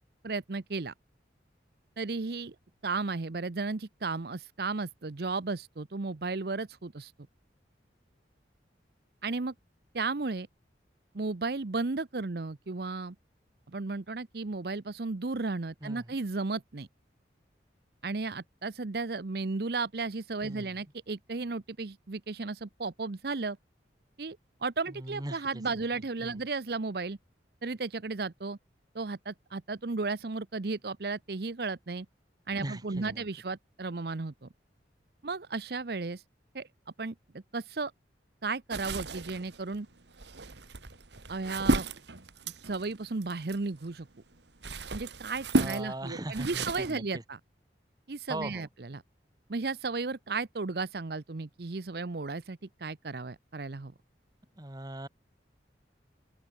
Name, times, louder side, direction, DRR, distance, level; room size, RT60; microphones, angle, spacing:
voice 1, 0.2-0.9 2.0-2.5 2.8-7.1 9.2-9.5 9.9-10.5 11.1-13.1 13.7-16.9 18.0-23.6 24.2-27.2 27.6-28.6 28.9-32.1 32.5-34.5 35.2-36.2 36.5-36.7 37.0-37.9 38.4-39.9 41.3-41.8 42.6-44.1 44.9-47.4 48.1-49.0 49.5-53.9, right 3 dB, 60° right, 0.7 m, -34 dB
voice 2, 24.9-25.4 26.2-26.4 32.5-33.2 45.6-47.0 48.3-48.6 54.6-55.1, right 1 dB, 20° right, 1.3 m, -39 dB
sound 1, 38.7-43.9 44.3-46.9, right 2 dB, 75° right, 1.9 m, -33 dB
open air
head